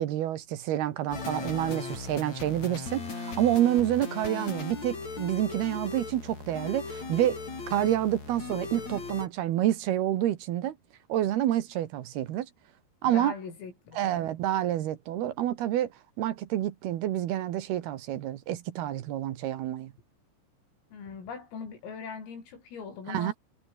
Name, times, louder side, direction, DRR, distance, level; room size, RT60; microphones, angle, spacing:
voice 1, 0.0-7.4 7.7-10.8 11.1-12.5 13.0-13.3 13.9-15.9 16.2-19.9 23.1-23.3, right 12 dB, 65° right, 2.8 m, -28 dB
sound 1, 1.1-9.3, left 4 dB, 35° left, 6.8 m, -38 dB
voice 2, 13.0-14.3 20.9-23.3, left 5 dB, 90° left, 9.6 m, -41 dB
omnidirectional pair, 5.8 m